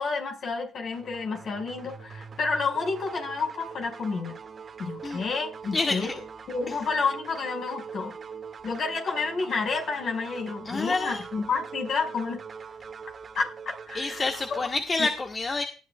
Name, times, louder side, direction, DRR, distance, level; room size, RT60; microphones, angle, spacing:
voice 1, 0.0-4.4 4.8-6.1 6.5-8.1 8.6-12.4 13.4-13.5 13.9-14.2 15.0-15.1, left 4 dB, 55° left, 4 dB, 5.3 m, -30 dB
sound 1, 0.9-14.6, right 6 dB, 45° right, 1.9 m, -43 dB
voice 2, 5.7-6.1 6.7-6.8 10.6-11.2 13.9-15.6, left 3 dB, 30° left, 4 dB, 1.4 m, -28 dB
18.5 x 11.0 x 2.4 m, 0.34 s
supercardioid pair, 65°, 0 cm